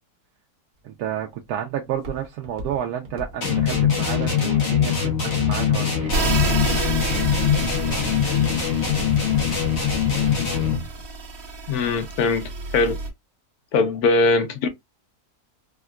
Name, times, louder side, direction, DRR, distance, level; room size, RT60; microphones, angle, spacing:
Walk footsteps, 0.8-5.9 6.5-6.9 7.5-7.8 8.2-11.0 11.4-11.5, left 1 dB, 45° right, 1.0 m, -38 dB
voice 1, 0.8-6.1, right 10 dB, 80° right, 1.1 m, -30 dB
sound 1, 3.4-10.9, left 7 dB, 50° left, 1.2 m, -22 dB
sound 2, 6.1-13.1, right 3 dB, 65° right, 1.3 m, -29 dB
voice 2, 11.7-13.0 13.7-14.7, left 3 dB, 80° left, 1.2 m, -21 dB
3.6 x 2.2 x 2.3 m
omnidirectional pair, 1.6 m